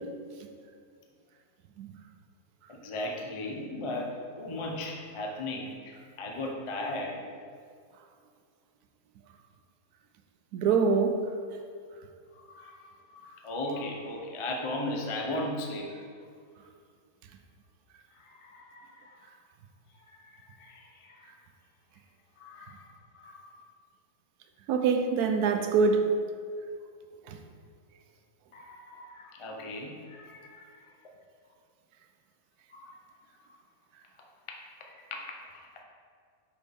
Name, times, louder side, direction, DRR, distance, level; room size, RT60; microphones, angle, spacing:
voice 1, 2.7-7.2 12.5-15.9 18.1-19.2 20.1-21.3 22.4-22.8 23.1-23.5 28.5-30.9 32.7-33.0 34.2-34.6 34.9-35.8, left 1 dB, 40° left, 0 dB, 0.4 m, -37 dB
voice 2, 10.5-11.3 24.7-26.1 27.3-27.4, right 5 dB, 85° right, 5 dB, 1.1 m, -24 dB
6.2 x 5.5 x 3.5 m, 2.2 s
omnidirectional pair, 1.6 m